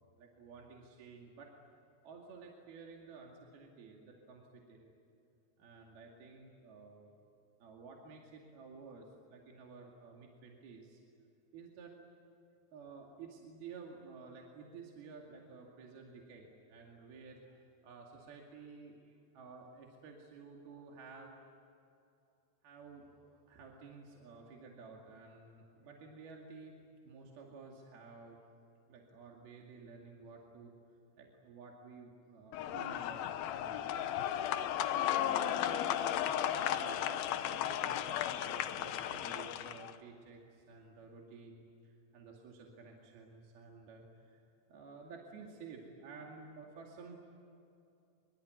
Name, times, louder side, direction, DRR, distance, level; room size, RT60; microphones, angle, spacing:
voice 1, 0.2-1.5 2.0-4.9 5.6-7.1 7.6-11.0 11.5-11.9 12.7-21.3 22.6-26.8 27.0-28.4 28.9-30.7 31.2-34.2 34.7-44.4 44.7-47.2, right 4 dB, 60° right, 0 dB, 4.0 m, -53 dB
sound 1, 32.5-39.9, left 11 dB, 70° left, 2.4 m, -35 dB
24.5 x 23.5 x 9.4 m, 2.8 s
omnidirectional pair, 5.1 m